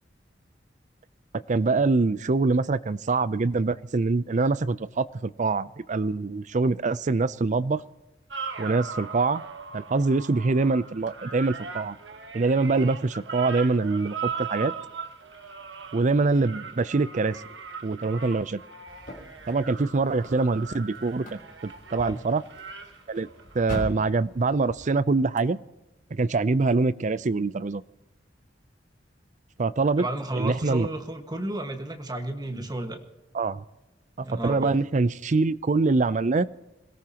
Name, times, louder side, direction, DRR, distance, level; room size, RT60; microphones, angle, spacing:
voice 1, 1.5-7.8 8.6-9.4 9.7-12.0 12.3-14.7 15.9-17.4 17.8-18.6 19.5-22.4 23.1-23.3 23.5-25.6 26.1-27.8 29.6-30.0 30.4-30.9 32.5-32.6 33.3-33.6 34.2-36.5, right 3 dB, 40° right, 16 dB, 0.5 m, -24 dB
sound 1, 8.3-23.9 25.4-25.5, right 5 dB, 75° right, 1.5 m, -39 dB
sound 2, 18.9-24.8, equal, 50° left, 3.6 m, -42 dB
voice 2, 30.0-33.0 34.2-34.8, right 1 dB, 25° right, 5 dB, 1.6 m, -32 dB
26.0 x 17.5 x 2.9 m, 1.0 s
head